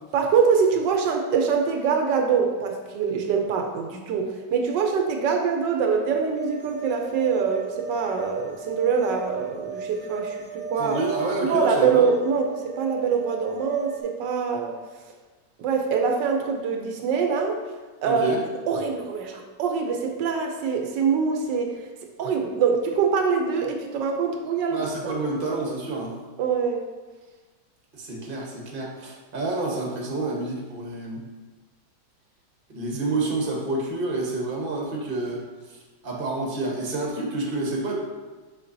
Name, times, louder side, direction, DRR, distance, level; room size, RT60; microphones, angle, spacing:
voice 1, 0.1-11.0 11.4-14.8 15.6-17.6 18.0-18.2 18.7-21.7 22.2-24.9 25.5-25.6 26.4-26.9, right 6 dB, 85° right, 3 dB, 1.3 m, -24 dB
sound 1, 6.3-14.0, right 6 dB, 15° right, 1.0 m, -36 dB
voice 2, 10.8-12.1 18.0-18.4 24.7-26.1 27.9-31.2 32.7-35.4 35.7-35.8 36.0-38.0, right 2 dB, 35° right, -1 dB, 1.1 m, -28 dB
6.6 x 6.0 x 2.7 m, 1.3 s
omnidirectional pair, 1.9 m